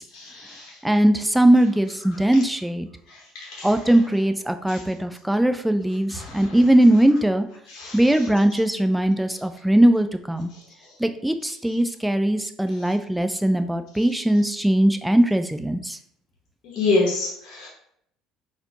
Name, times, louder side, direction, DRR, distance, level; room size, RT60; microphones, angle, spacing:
voice 1, 0.1-0.7 3.3-3.7 4.7-4.8 6.1-6.4 7.7-8.3 16.6-17.7, left 3 dB, 60° left, -3 dB, 1.0 m, -27 dB
voice 2, 0.8-2.9 3.6-7.4 7.9-10.5 11.0-16.0, right 1 dB, 5° right, 8 dB, 0.4 m, -20 dB
4.1 x 2.7 x 2.8 m, 0.70 s
hypercardioid pair, 65°, 0 cm